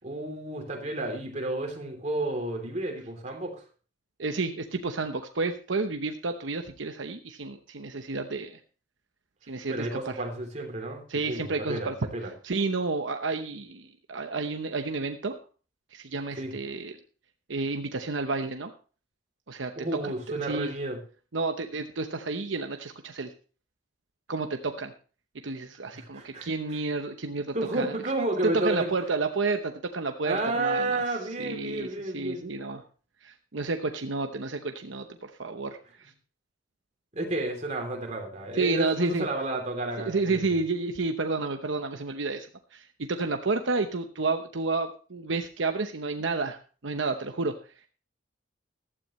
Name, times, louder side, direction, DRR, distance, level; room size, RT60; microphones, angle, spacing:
voice 1, 0.0-3.6 9.7-12.3 16.4-16.5 19.8-21.0 25.9-26.5 27.5-28.9 30.2-32.5 37.1-40.6, right 2 dB, 40° right, 2 dB, 3.2 m, -31 dB
voice 2, 4.2-8.6 9.5-10.2 11.1-12.0 12.4-15.4 15.9-17.0 17.5-18.7 19.5-19.7 20.0-20.1 20.4-20.7 21.3-23.3 24.3-24.9 25.4-28.0 28.4-32.8 33.2-36.1 38.5-39.3 40.0-47.5, right 3 dB, 80° right, 6 dB, 0.9 m, -31 dB
15.0 x 12.5 x 3.1 m, 0.37 s
head